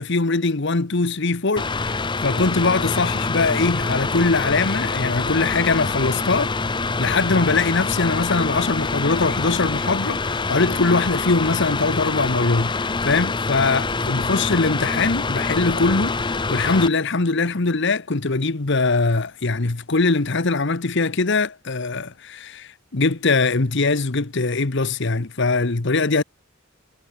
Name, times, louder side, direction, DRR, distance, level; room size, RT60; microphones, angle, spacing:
voice 1, 0.0-6.5 7.0-26.2, left 3 dB, 60° left, 1.2 m, -22 dB
Mechanical fan, 1.6-16.9, left 3 dB, 25° left, 0.7 m, -25 dB
head